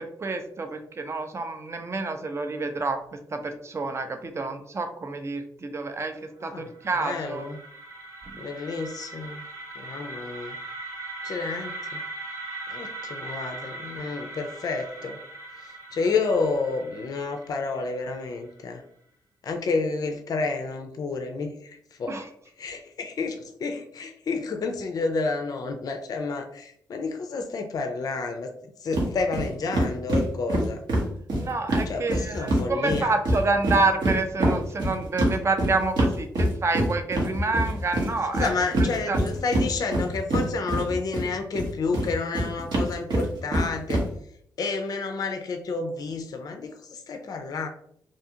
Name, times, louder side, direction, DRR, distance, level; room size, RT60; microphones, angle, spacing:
voice 1, 0.0-7.5 8.3-8.4 22.1-22.3 31.4-38.5 38.8-39.2, right 3 dB, 35° right, 7 dB, 0.5 m, -28 dB
voice 2, 6.4-6.7 7.0-7.6 8.4-9.4 9.8-10.6 11.2-12.1 12.7-15.2 15.6-18.8 19.4-22.3 22.6-28.5 28.8-30.8 31.9-33.2 38.3-44.0 44.6-47.7, left 4 dB, 55° left, 5 dB, 0.4 m, -30 dB
sound 1, 6.5-18.5, right 2 dB, 55° right, 1.2 m, -40 dB
sound 2, 28.9-29.1 29.3-29.5 29.7-32.6 32.9-41.3 41.5-44.0, right 1 dB, 70° right, 0.9 m, -24 dB
2.6 x 2.4 x 2.8 m, 0.68 s
cardioid pair, 65°, 8 cm